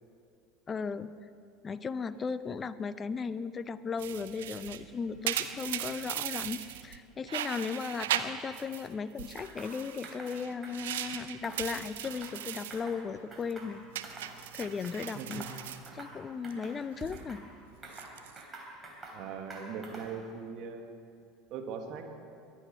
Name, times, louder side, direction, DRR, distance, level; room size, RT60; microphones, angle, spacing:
voice 1, 0.7-1.1 1.6-13.8 14.5-15.4 15.9-17.4, left 5 dB, 30° left, 15 dB, 0.6 m, -36 dB
sound 1, 4.0-7.0 7.3-8.9 9.2-12.8 13.2-13.5 13.9-16.5 16.8-17.2 17.8-18.4, right 12 dB, 70° right, 0.6 m, -38 dB
sound 2, 9.4-9.7 10.0-10.3 10.6-11.0 11.4-12.4 12.7-13.0 13.3-14.3 14.6-15.0 15.3-15.6 15.9-16.2 16.4-17.4 17.8-19.2 19.5-20.2, right 3 dB, 25° right, 3.4 m, -47 dB
voice 2, 15.0-15.5 19.1-20.9 21.5-22.1, right 6 dB, 50° right, 4 dB, 1.6 m, -41 dB
23.0 x 8.4 x 5.5 m, 2.4 s
figure-of-eight pair, 70°, 0 cm